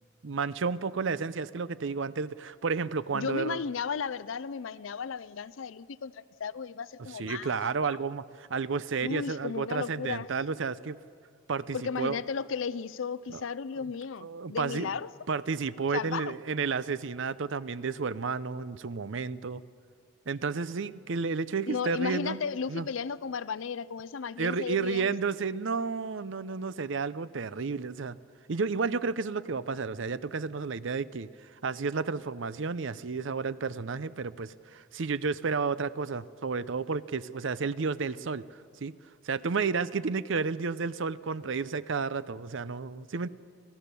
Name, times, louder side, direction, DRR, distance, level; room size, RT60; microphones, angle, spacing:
voice 1, 0.2-3.6 7.0-11.0 11.5-12.2 13.3-13.5 13.8-13.9 14.2-14.9 15.3-19.6 20.3-22.4 22.7-22.9 24.4-28.2 28.5-31.3 31.6-38.4 38.8-38.9 39.2-43.3, right 5 dB, 65° right, 16 dB, 0.6 m, -31 dB
voice 2, 3.1-7.5 7.8-8.0 9.0-10.3 11.7-15.1 15.9-16.4 21.7-25.1, left 6 dB, 70° left, 16 dB, 0.5 m, -34 dB
26.5 x 16.0 x 6.9 m, 2.2 s
head